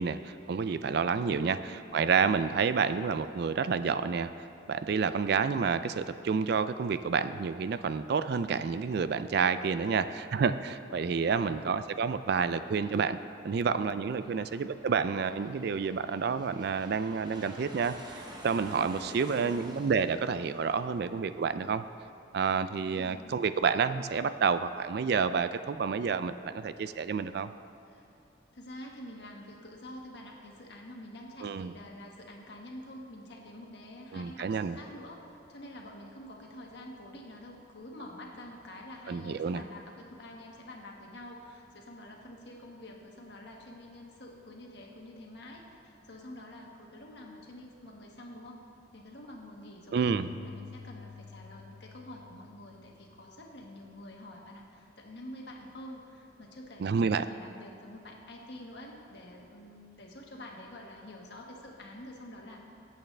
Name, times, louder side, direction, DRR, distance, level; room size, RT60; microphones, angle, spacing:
voice 1, 0.0-13.2 13.4-21.8 22.3-27.5 31.4-31.7 34.1-34.8 39.1-39.6 49.9-50.3 56.8-57.3, right 5 dB, 55° right, 12 dB, 0.3 m, -29 dB
voice 2, 1.2-1.7 11.3-11.5 14.2-14.7 18.9-19.6 22.9-23.3 27.9-28.1 28.5-48.6 48.9-50.1 50.4-62.6, left 1 dB, 55° left, 0 dB, 1.5 m, -47 dB
Aircraft, 11.2-22.2, right 1 dB, 20° right, 1.1 m, -51 dB
Keyboard (musical), 50.0-53.5, left 5 dB, 90° left, 1.0 m, -49 dB
19.5 x 8.3 x 3.3 m, 2.6 s
head